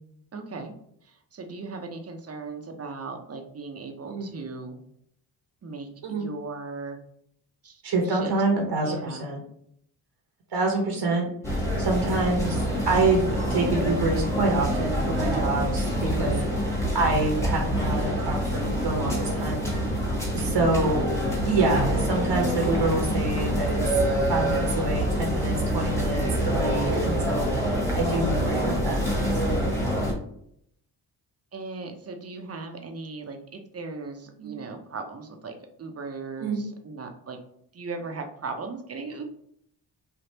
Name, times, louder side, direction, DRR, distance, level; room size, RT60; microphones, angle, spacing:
voice 1, 0.3-0.7 1.0-4.8 5.6-7.0 7.6-8.3 8.8-9.3 16.0-16.5 31.5-37.4 37.7-39.2, right 4 dB, 35° right, 5 dB, 0.7 m, -38 dB
voice 2, 7.8-9.4 10.5-16.3 16.9-19.6 20.0-21.1 21.5-24.0 24.3-27.5 27.9-29.3 34.4-34.5 36.4-36.6, right 2 dB, 65° right, 1 dB, 1.0 m, -27 dB
sound 1, 11.4-30.1, equal, 5° left, 1.3 m, -26 dB
3.3 x 2.4 x 2.8 m, 0.71 s
supercardioid pair, 60°, 45 cm